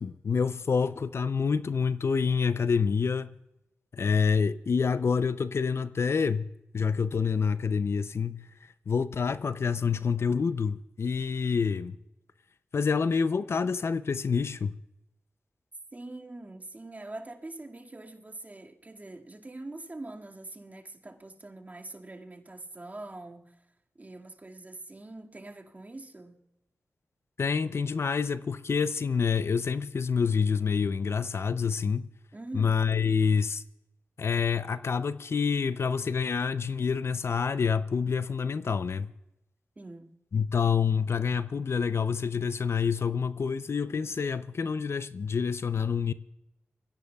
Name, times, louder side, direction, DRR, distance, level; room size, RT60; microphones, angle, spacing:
voice 1, 0.0-3.3 3.9-6.4 6.7-8.5 8.9-12.0 12.7-14.8 27.4-32.1 32.5-33.6 34.2-39.1 40.3-46.1, left 5 dB, 65° left, 0.5 m, -27 dB
voice 2, 15.9-23.7 24.0-26.4 32.3-32.8 39.8-40.1, right 2 dB, 35° right, 2.0 m, -44 dB
24.5 x 16.0 x 2.3 m
cardioid pair, 50°, 5 cm